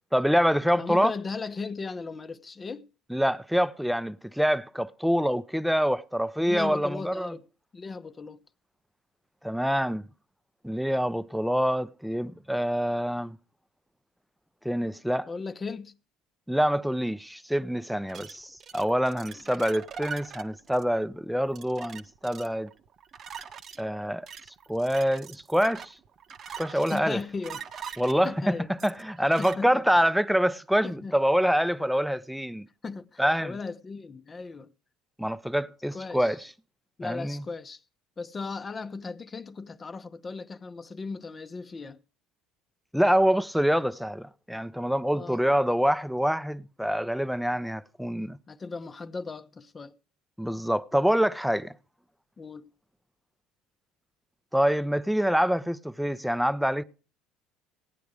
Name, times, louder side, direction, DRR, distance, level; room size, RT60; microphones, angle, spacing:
voice 1, 0.1-1.1 3.1-7.3 9.4-10.0 10.6-13.4 14.6-15.3 16.5-22.7 23.8-24.3 24.7-25.9 26.6-27.2 28.0-28.6 28.8-32.7 33.2-33.6 35.2-36.4 37.0-37.4 42.9-48.4 50.4-51.7 54.5-56.8, equal, ahead, 0.7 m, -26 dB
voice 2, 0.8-2.9 6.4-7.4 7.7-8.4 15.3-15.9 19.4-19.5 26.7-27.9 28.2-28.7 29.3-29.8 30.8-31.1 32.8-34.7 35.9-36.4 37.0-37.8 38.2-42.0 45.1-45.4 48.5-49.9 52.4-52.7, left 4 dB, 30° left, 0.8 m, -37 dB
sound 1, 18.1-29.6, right 7 dB, 45° right, 0.9 m, -43 dB
16.5 x 9.4 x 5.0 m
hypercardioid pair, 70°, 0 cm